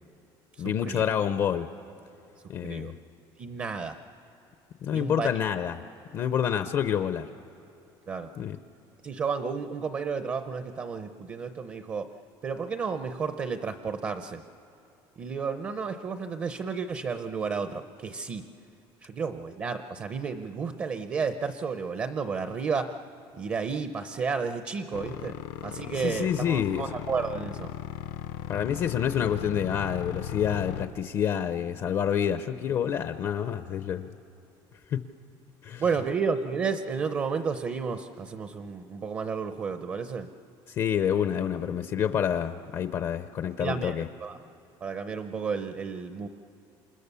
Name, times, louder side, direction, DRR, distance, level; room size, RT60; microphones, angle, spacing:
voice 1, 0.6-1.7 2.5-3.0 4.8-5.8 6.1-7.3 8.4-8.6 25.9-26.9 28.5-34.1 34.9-35.0 35.6-35.8 40.7-44.1, left 8 dB, 40° left, 9 dB, 0.6 m, -28 dB
voice 2, 3.4-3.9 4.9-5.3 8.1-8.3 9.0-12.1 12.4-14.4 15.2-18.5 19.0-22.9 23.4-25.4 25.6-27.7 35.8-40.3 43.6-44.4 44.8-46.3, right 5 dB, 25° right, 9 dB, 0.7 m, -32 dB
sound 1, 24.9-30.9, left 12 dB, 80° left, 0.9 m, -37 dB
28.0 x 28.0 x 6.9 m, 2.7 s
cardioid pair, 170°, 9 cm